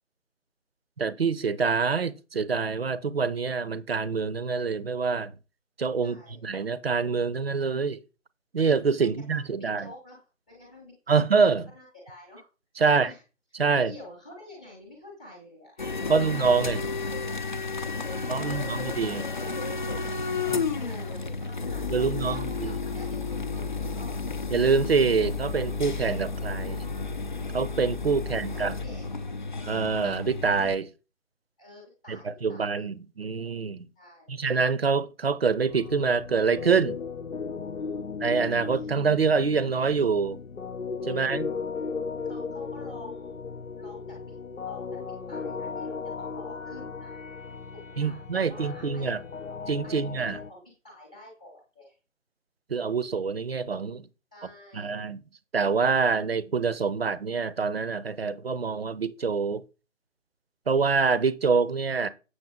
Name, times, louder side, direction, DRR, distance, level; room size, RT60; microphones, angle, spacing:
voice 1, 1.0-5.3 5.8-8.0 8.5-9.9 11.1-11.6 12.8-13.1 13.6-13.9 16.1-16.8 18.3-19.2 21.9-22.7 24.5-26.9 27.5-28.7 29.6-30.9 32.1-33.9 34.3-37.0 38.2-40.4 41.0-41.5 48.0-49.2 49.7-50.4 52.7-54.1 54.7-55.2 55.5-59.6 60.7-62.1, right 5 dB, 50° right, 0.8 m, -25 dB
voice 2, 6.0-6.5 9.0-10.2 10.5-12.5 12.8-13.2 13.7-16.3 17.7-19.5 20.4-24.4 28.2-28.4 28.7-29.1 31.6-32.8 34.0-34.4 37.8-38.1 38.7-38.9 41.2-41.6 42.2-43.4 43.8-44.3 44.6-47.2 47.7-49.2 49.8-52.0 54.3-55.0, left 1 dB, 5° left, 0.8 m, -48 dB
sound 1, 15.8-30.8, left 4 dB, 35° left, 0.6 m, -32 dB
sound 2, 35.7-50.5, left 5 dB, 75° left, 0.9 m, -36 dB
7.9 x 6.6 x 3.7 m
figure-of-eight pair, 155°, 39 cm